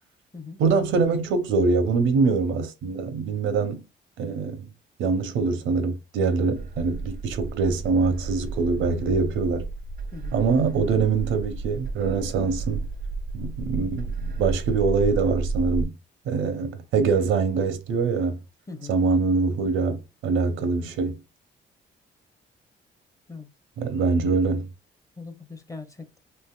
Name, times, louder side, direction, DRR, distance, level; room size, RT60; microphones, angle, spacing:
voice 1, 0.6-3.8 4.2-4.7 5.0-9.7 10.3-12.9 13.3-15.9 16.3-18.4 18.9-21.2 23.8-24.7, right 4 dB, 85° right, 0.7 m, -24 dB
sound 1, 6.6-15.8, right 3 dB, 50° right, 0.4 m, -32 dB
voice 2, 18.7-19.0 23.3-23.5 25.2-26.2, left 4 dB, 15° left, 0.7 m, -40 dB
3.3 x 2.6 x 2.3 m
cardioid pair, 90°, 20 cm